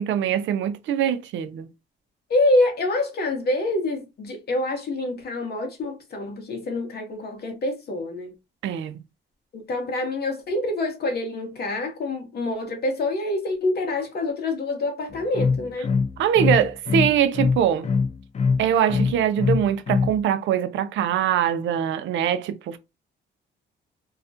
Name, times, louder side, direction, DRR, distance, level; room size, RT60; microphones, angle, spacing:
voice 1, 0.0-1.7 8.6-9.0 16.2-17.9 18.6-22.8, right 9 dB, 75° right, 0.4 m, -23 dB
voice 2, 2.3-8.3 9.5-15.9, left 2 dB, 55° left, 0.8 m, -26 dB
sound 1, 15.1-20.2, left 5 dB, 35° left, 0.4 m, -23 dB
2.3 x 2.1 x 2.5 m
cardioid pair, 90°, 20 cm